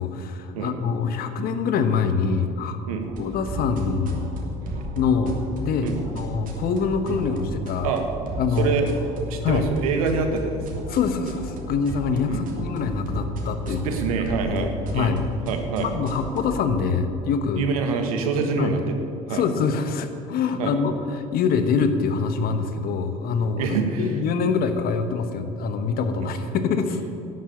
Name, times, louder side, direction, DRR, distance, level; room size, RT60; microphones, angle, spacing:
voice 1, 0.0-2.8 3.2-4.6 4.9-5.9 6.1-7.9 8.4-8.9 9.4-9.7 10.9-13.9 14.5-15.2 15.8-17.7 18.6-18.7 19.3-27.0, left 5 dB, 55° left, 8 dB, 1.3 m, -25 dB
sound 1, 3.0-16.6, equal, 50° right, 2.9 m, -34 dB
voice 2, 8.6-8.9 9.3-10.6 12.3-12.4 13.6-15.1 15.5-15.9 17.5-19.0 19.3-19.4 20.6-20.7 23.6-24.2, right 5 dB, 80° right, 5 dB, 1.5 m, -25 dB
11.5 x 7.8 x 8.6 m, 2.6 s
hypercardioid pair, 70°, 18 cm